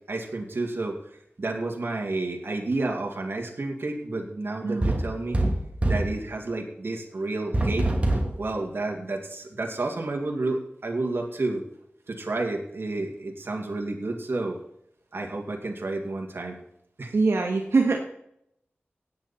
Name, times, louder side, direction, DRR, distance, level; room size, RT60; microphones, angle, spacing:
voice 1, 0.1-5.4 5.8-7.9 8.3-11.6 12.1-14.6 15.1-16.6 17.0-17.2, right 2 dB, 60° right, 1 dB, 2.4 m, -30 dB
sound 1, 4.8-6.2 7.5-8.4, right 1 dB, 30° right, 2.4 m, -24 dB
voice 2, 17.1-18.0, right 3 dB, 80° right, 2 dB, 1.7 m, -23 dB
17.5 x 8.7 x 4.4 m, 0.73 s
wide cardioid pair, 85°, 4 cm